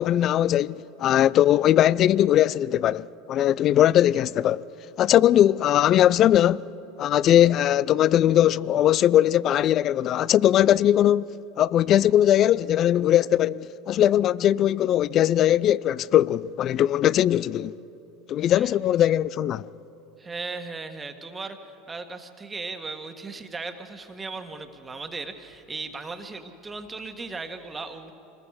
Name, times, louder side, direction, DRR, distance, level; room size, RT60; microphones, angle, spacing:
voice 1, 0.0-4.6 5.0-6.7 7.0-11.3 11.6-17.8 18.3-19.6, left 11 dB, 45° left, 0.4 m, -20 dB
voice 2, 20.2-28.1, right 3 dB, 20° right, 1.6 m, -37 dB
26.0 x 20.5 x 4.9 m
hypercardioid pair, 95°, 0 cm